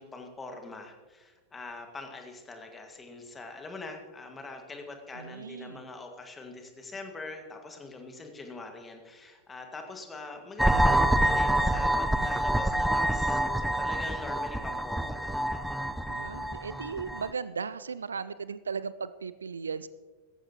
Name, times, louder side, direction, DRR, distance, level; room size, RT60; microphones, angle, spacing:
voice 1, 0.0-15.7, left 3 dB, 15° left, 4 dB, 1.9 m, -43 dB
voice 2, 5.2-5.9 16.1-19.9, right 5 dB, 70° right, 16 dB, 0.4 m, -36 dB
sound 1, 10.6-17.3, right 1 dB, ahead, 0.4 m, -27 dB
17.0 x 14.0 x 3.0 m, 1.3 s
figure-of-eight pair, 90°, 0 cm